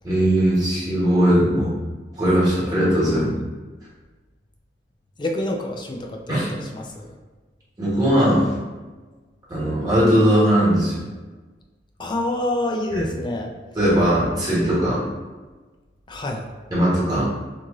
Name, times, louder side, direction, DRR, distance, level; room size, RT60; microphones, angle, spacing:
voice 1, 0.0-1.7 2.2-3.4 6.3-6.5 7.8-8.5 9.5-11.0 12.9-13.0 13.7-15.0 16.7-17.3, equal, 20° right, -9 dB, 1.4 m, -19 dB
voice 2, 5.2-7.2 12.0-13.5 16.1-16.5, left 1 dB, 25° left, 2 dB, 0.4 m, -27 dB
3.1 x 2.5 x 3.7 m, 1.3 s
head